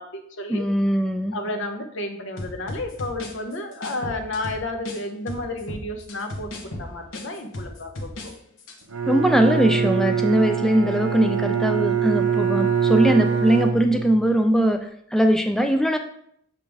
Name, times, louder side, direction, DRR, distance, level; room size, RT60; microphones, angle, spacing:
voice 1, 0.0-0.6 1.3-8.3, left 2 dB, 60° left, 4 dB, 0.9 m, -32 dB
voice 2, 0.5-1.3 9.1-14.8 15.1-16.0, right 1 dB, ahead, 6 dB, 0.3 m, -20 dB
sound 1, 2.4-5.0 5.3-8.3 8.6-8.8, left 1 dB, 80° left, 1.2 m, -35 dB
Bowed string instrument, 8.9-14.4, right 7 dB, 80° right, 0.7 m, -23 dB
6.6 x 5.2 x 3.4 m, 0.70 s
head